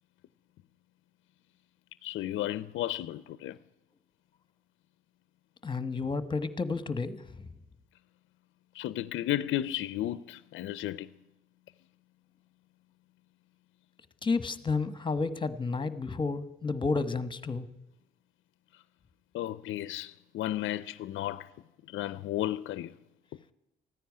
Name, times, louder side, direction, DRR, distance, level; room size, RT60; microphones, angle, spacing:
voice 1, 2.0-3.6 8.7-11.1 18.7-18.8 19.3-21.5 21.9-23.0, left 13 dB, 75° left, 0.5 m, -33 dB
voice 2, 5.6-7.5 14.2-17.7, left 4 dB, 25° left, 1.2 m, -31 dB
14.5 x 9.9 x 9.7 m
cardioid pair, 90°, 20 cm